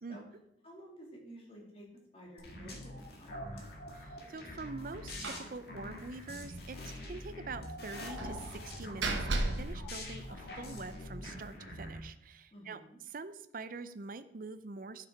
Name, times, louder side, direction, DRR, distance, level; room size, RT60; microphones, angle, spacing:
voice 1, 0.6-1.9 2.1-3.7 12.5-13.0, right 1 dB, 30° left, -2 dB, 2.5 m, -52 dB
sound 1, 2.4-12.0, left 1 dB, 55° left, 2.0 m, -45 dB
voice 2, 3.9-12.8 13.1-15.1, right 3 dB, 45° right, 12 dB, 0.5 m, -45 dB
Slam, 5.2-5.6 5.8-5.9 6.3-6.4 8.2-10.8, right 2 dB, 80° right, 1.2 m, -36 dB
11.5 x 6.0 x 4.6 m, 0.81 s
head